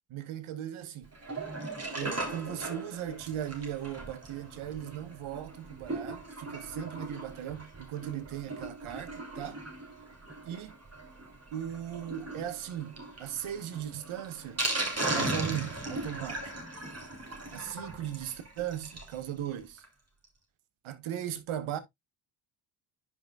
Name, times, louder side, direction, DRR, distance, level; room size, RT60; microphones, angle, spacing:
voice 1, 0.1-1.1 1.9-9.6 10.4-10.7 11.5-14.7 15.1-16.5 17.5-19.8 20.8-21.8, right 11 dB, 75° right, 1.2 m, -38 dB
Sink (filling or washing), 1.1-19.2 19.5-19.6 19.8-19.9 20.2-20.3, right 2 dB, 30° right, 3.5 m, -38 dB
10.0 x 5.5 x 2.3 m
supercardioid pair, 50°, 49 cm